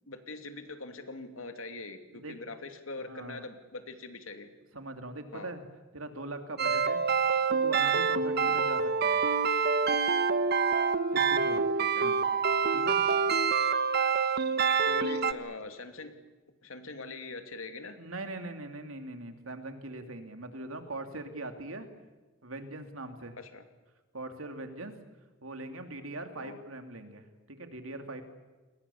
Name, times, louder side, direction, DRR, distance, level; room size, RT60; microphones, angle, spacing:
voice 1, 0.1-4.5 5.3-5.5 8.4-8.6 11.5-12.2 14.9-16.1 16.6-18.0 23.4-23.6 26.4-26.6, left 3 dB, 90° left, 7 dB, 2.7 m, -43 dB
voice 2, 3.1-3.4 4.7-5.6 5.9-7.0 7.5-9.2 11.1-11.7 12.0-12.2 12.7-13.0 18.0-21.9 22.4-23.4 24.1-24.9 25.4-28.2, right 2 dB, 85° right, 6 dB, 2.8 m, -41 dB
sound 1, 6.6-15.3, right 5 dB, 50° right, 1.1 m, -26 dB
29.5 x 21.0 x 7.2 m, 1.2 s
head